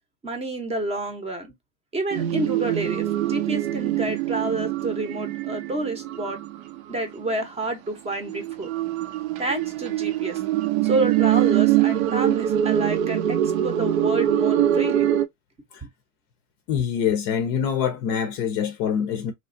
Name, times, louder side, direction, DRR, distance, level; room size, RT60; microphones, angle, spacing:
voice 1, 0.2-1.5 1.9-6.4 6.9-8.7 9.4-10.4 10.8-15.1, right 2 dB, 15° right, 0.7 m, -29 dB
sound 1, 2.1-7.3 8.1-15.3, right 12 dB, 70° right, 0.7 m, -24 dB
voice 2, 16.7-19.3, left 8 dB, 40° left, 0.6 m, -25 dB
3.2 x 2.4 x 2.5 m
hypercardioid pair, 115°, 44 cm